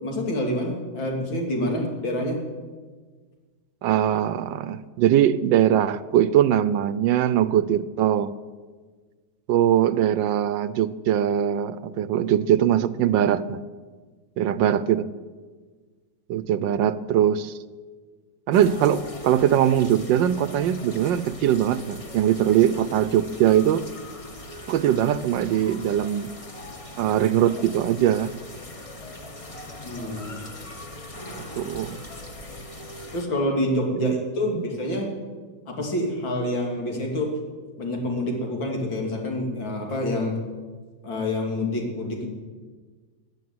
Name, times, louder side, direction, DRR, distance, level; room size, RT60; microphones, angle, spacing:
voice 1, 0.0-2.4 22.5-22.6 29.8-30.4 33.1-35.1 35.7-37.3 37.8-40.4 41.0-42.3, left 1 dB, 80° left, 0 dB, 3.5 m, -27 dB
voice 2, 3.8-8.3 9.5-13.6 14.4-15.1 16.3-17.5 18.5-23.8 24.7-26.3 27.0-28.3 31.5-32.0 34.0-34.2 34.5-34.6, right 10 dB, 75° right, 15 dB, 1.3 m, -21 dB
sound 1, 18.5-33.3, left 1 dB, 20° left, 1.0 m, -40 dB
14.5 x 9.9 x 9.5 m, 1.5 s
omnidirectional pair, 2.1 m